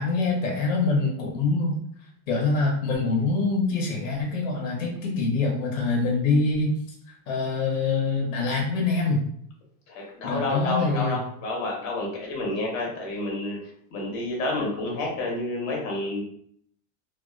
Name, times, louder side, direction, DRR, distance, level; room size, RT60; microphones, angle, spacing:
voice 1, 0.0-1.8 2.3-6.8 7.3-9.3 10.2-11.2, left 3 dB, 70° left, 0 dB, 0.8 m, -25 dB
voice 2, 9.9-13.6 13.9-16.2, left 2 dB, 40° left, -2 dB, 0.9 m, -29 dB
2.4 x 2.3 x 2.3 m, 0.65 s
supercardioid pair, 140°, 40 cm